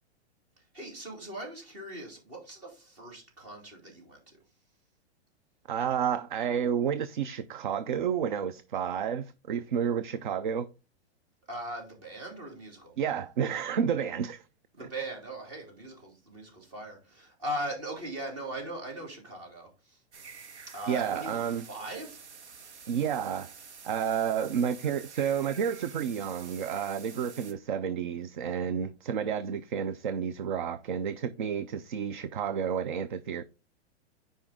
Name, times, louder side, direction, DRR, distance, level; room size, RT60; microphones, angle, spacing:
voice 1, 0.6-4.4 11.5-12.9 14.8-20.0 20.7-22.7, right 1 dB, 30° right, 3.0 m, -40 dB
voice 2, 5.7-10.7 13.0-14.4 14.8-14.9 20.9-21.7 22.9-23.5 23.8-33.4, right 8 dB, 45° right, 0.5 m, -30 dB
sound 1, 20.1-27.5, right 6 dB, 80° right, 1.7 m, -49 dB
9.0 x 5.2 x 3.6 m
hypercardioid pair, 175°, 33 cm